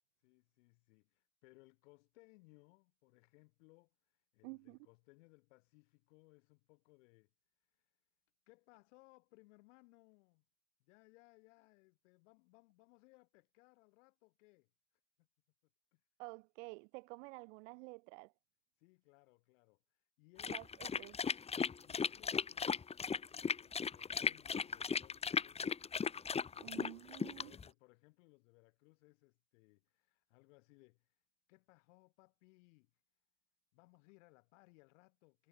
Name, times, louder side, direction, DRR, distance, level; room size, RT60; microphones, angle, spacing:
voice 1, 0.2-7.3 7.6-8.0 8.5-10.4 10.8-15.3 15.9-16.0 18.8-20.6 21.8-26.1 26.5-33.0 33.7-35.5, left 25 dB, 80° left, 7.3 m, -67 dB
voice 2, 4.4-4.8 16.2-18.3 20.4-21.2 26.6-27.5, right 29 dB, 80° right, 1.6 m, -50 dB
sound 1, 20.4-27.7, left 6 dB, 15° left, 0.7 m, -37 dB
supercardioid pair, 105°, 36 cm